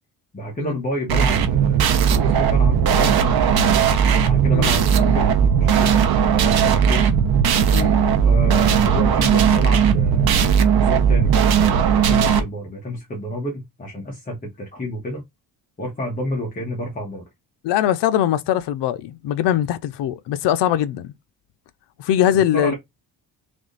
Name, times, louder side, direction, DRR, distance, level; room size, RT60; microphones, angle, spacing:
voice 1, 0.3-3.2 4.2-7.1 8.2-15.2 15.8-17.2 22.3-22.7, equal, 20° left, 1.3 m, -29 dB
sound 1, 1.1-12.4, right 7 dB, 65° right, 0.9 m, -17 dB
voice 2, 17.6-21.1 22.0-22.7, left 11 dB, 85° left, 0.6 m, -21 dB
3.6 x 3.2 x 3.8 m
cardioid pair, 175°, 40 cm